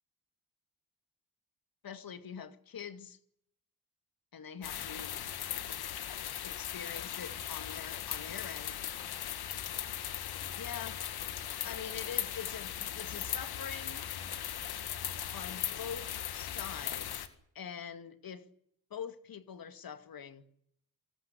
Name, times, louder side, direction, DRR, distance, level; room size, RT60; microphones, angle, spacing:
voice 1, 1.8-3.2 4.3-5.2 6.4-8.9 10.6-11.0 11.6-14.0 15.3-17.3 17.5-18.5 18.9-20.4, left 7 dB, 65° left, 2.2 m, -44 dB
sound 1, 4.6-17.3, left 10 dB, 85° left, 1.9 m, -38 dB
27.0 x 19.0 x 8.2 m
supercardioid pair, 50°, 37 cm